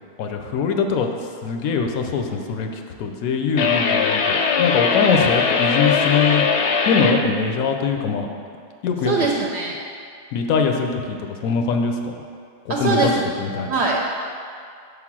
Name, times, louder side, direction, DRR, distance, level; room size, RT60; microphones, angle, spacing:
voice 1, 0.2-1.1 1.4-2.7 3.0-6.5 6.9-8.3 8.8-9.1 10.3-12.1 12.7-13.1 13.4-13.7, left 5 dB, 90° left, 4 dB, 1.1 m, -22 dB
sound 1, 3.6-7.2, left 5 dB, 65° left, 0.7 m, -20 dB
voice 2, 9.0-9.7 12.7-13.2 13.7-14.2, right 3 dB, 65° right, -2 dB, 0.8 m, -21 dB
6.3 x 3.8 x 6.0 m, 2.3 s
omnidirectional pair, 1.4 m